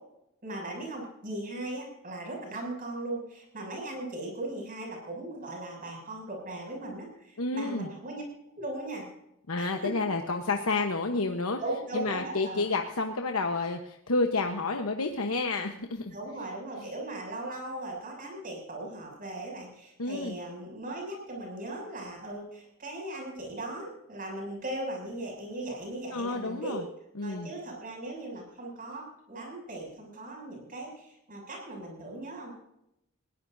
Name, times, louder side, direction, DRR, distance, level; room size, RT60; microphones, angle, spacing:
voice 1, 0.4-8.2 8.5-9.0 9.6-9.9 11.6-12.6 16.1-26.9 27.2-32.5, right 1 dB, 40° right, 0 dB, 6.9 m, -38 dB
voice 2, 7.4-7.9 9.5-11.6 11.9-16.1 20.0-20.4 26.1-26.8 27.2-27.5, left 3 dB, 90° left, 4 dB, 1.1 m, -30 dB
21.0 x 18.0 x 2.7 m, 0.80 s
head